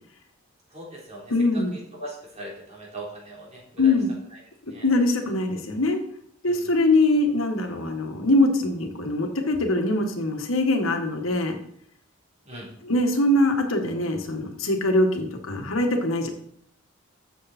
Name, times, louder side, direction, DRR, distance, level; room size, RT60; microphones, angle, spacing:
voice 1, 0.7-3.9 4.7-4.9 6.4-6.7 12.4-12.7, right 1 dB, 30° right, -3 dB, 3.8 m, -40 dB
voice 2, 1.3-1.7 3.8-4.1 4.8-6.0 6.4-11.6 12.8-16.3, left 2 dB, 80° left, 4 dB, 1.7 m, -22 dB
14.0 x 7.2 x 4.4 m, 0.66 s
head